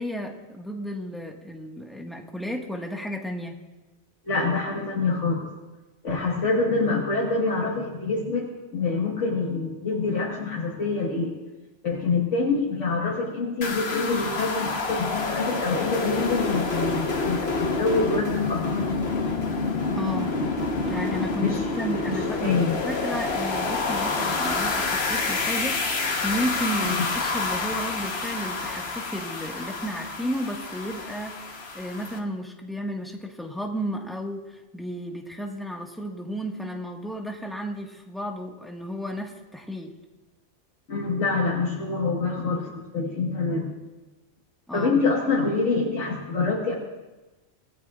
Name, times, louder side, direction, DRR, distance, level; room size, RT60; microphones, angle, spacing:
voice 1, 0.0-3.5 19.9-20.4 20.8-31.5 31.7-39.9 44.7-44.9, equal, ahead, 0 dB, 1.6 m, -33 dB
voice 2, 4.3-5.5 6.0-11.3 11.8-18.8 21.4-21.6 22.0-22.8 26.8-27.1 40.9-43.7 44.7-46.7, left 3 dB, 75° left, -3 dB, 2.0 m, -26 dB
sound 1, 13.6-32.2, left 3 dB, 60° left, 1.4 m, -28 dB
25.5 x 18.0 x 2.5 m, 1.1 s
omnidirectional pair, 1.3 m